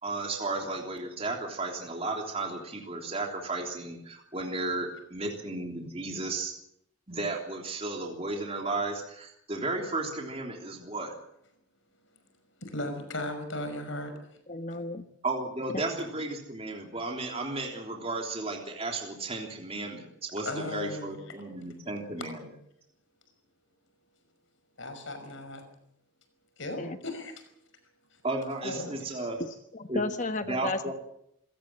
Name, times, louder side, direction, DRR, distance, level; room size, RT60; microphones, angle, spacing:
voice 1, 0.0-6.5 7.1-11.2 15.2-22.4 28.2-29.4 29.9-30.0 30.5-30.9, right 2 dB, 30° right, 1 dB, 3.4 m, -34 dB
voice 2, 12.6-14.1 20.4-21.2 22.2-22.3 24.8-25.6 26.6-27.4 28.6-29.3, left 1 dB, 65° left, 8 dB, 5.6 m, -36 dB
voice 3, 14.5-15.0 26.8-27.0 29.7-30.9, left 2 dB, 35° left, 8 dB, 1.3 m, -33 dB
27.0 x 17.0 x 7.5 m, 0.76 s
head